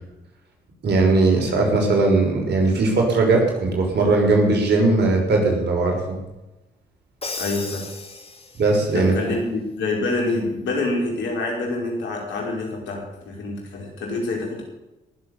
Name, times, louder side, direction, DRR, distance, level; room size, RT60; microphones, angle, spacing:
voice 1, 0.8-6.2 8.6-9.1, right 3 dB, 65° right, 1 dB, 5.9 m, -19 dB
Crash cymbal, 7.2-8.9, left 3 dB, 30° left, 2.6 m, -34 dB
voice 2, 7.4-7.9 8.9-14.6, left 2 dB, 75° left, 0 dB, 4.9 m, -26 dB
19.0 x 7.8 x 7.0 m, 0.98 s
supercardioid pair, 45°, 19 cm